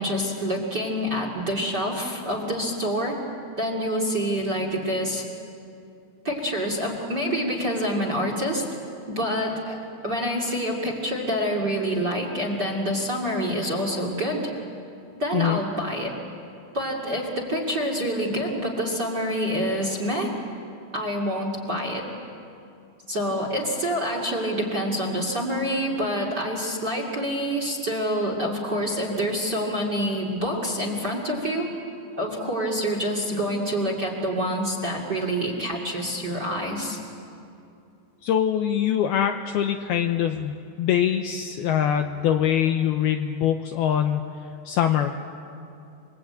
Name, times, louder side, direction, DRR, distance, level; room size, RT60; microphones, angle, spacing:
voice 1, 0.0-3.2 3.6-5.2 6.2-8.7 9.1-14.5 15.2-16.1 16.7-20.3 20.9-22.0 23.1-31.7 32.2-37.0, equal, 30° right, 1 dB, 2.2 m, -27 dB
voice 2, 38.2-44.3 44.7-45.1, left 9 dB, 80° left, 5 dB, 2.3 m, -23 dB
28.5 x 22.0 x 8.8 m, 2.6 s
omnidirectional pair, 5.3 m